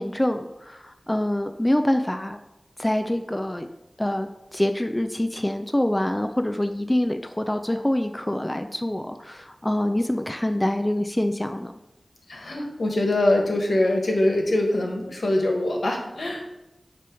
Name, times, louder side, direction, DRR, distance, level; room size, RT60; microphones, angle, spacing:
voice 1, 0.0-2.4 2.8-3.7 4.0-11.7, left 1 dB, 15° left, 6 dB, 0.4 m, -25 dB
voice 2, 12.3-16.4, left 1 dB, 80° left, 1 dB, 1.4 m, -23 dB
8.8 x 3.1 x 6.2 m, 0.92 s
wide cardioid pair, 65°, 0 cm